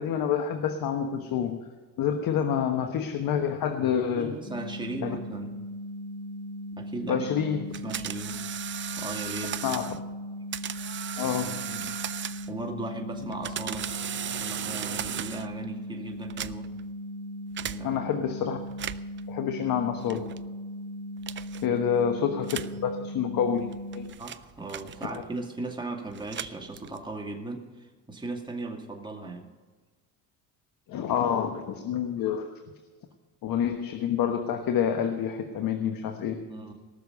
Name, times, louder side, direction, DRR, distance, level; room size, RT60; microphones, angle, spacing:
voice 1, 0.0-1.6 2.0-4.3 5.0-5.1 7.1-7.7 9.6-9.9 11.2-11.6 17.8-18.6 19.3-20.3 21.6-23.7 23.9-24.1 25.0-25.2 30.9-32.6 33.4-36.4, left 8 dB, 70° left, 6 dB, 1.3 m, -28 dB
voice 2, 4.1-5.6 6.7-7.3 7.8-8.4 9.0-10.0 11.3-12.0 12.5-13.9 14.3-16.7 17.6-18.3 21.7-21.8 24.2-29.5 36.5-36.7, right 2 dB, 10° right, 1 dB, 2.3 m, -38 dB
sound 1, 4.4-24.1, equal, 30° left, 3.3 m, -38 dB
sound 2, 7.7-10.0 10.5-12.6 13.2-15.6 16.2-16.8 17.6-17.8 18.7-19.2 20.1-20.4 21.2-21.6 22.4-22.8 23.6-25.3 26.1-27.1, right 10 dB, 35° right, 0.5 m, -36 dB
18.5 x 6.9 x 6.7 m, 1.4 s
cardioid pair, 105°, 36 cm